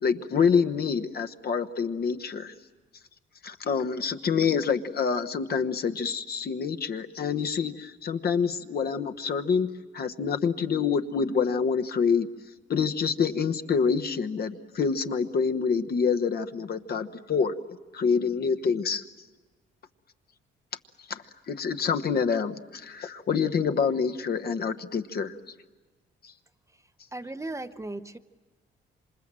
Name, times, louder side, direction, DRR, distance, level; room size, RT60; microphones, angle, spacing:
voice 1, 0.0-2.5 3.4-9.7 9.9-12.3 12.7-17.5 17.9-19.0 21.1-25.3 26.2-26.3, left 6 dB, 50° left, 7 dB, 1.1 m, -27 dB
voice 2, 27.1-28.2, right 2 dB, 15° right, 10 dB, 0.8 m, -36 dB
27.0 x 25.5 x 7.6 m, 1.3 s
cardioid pair, 90°, 20 cm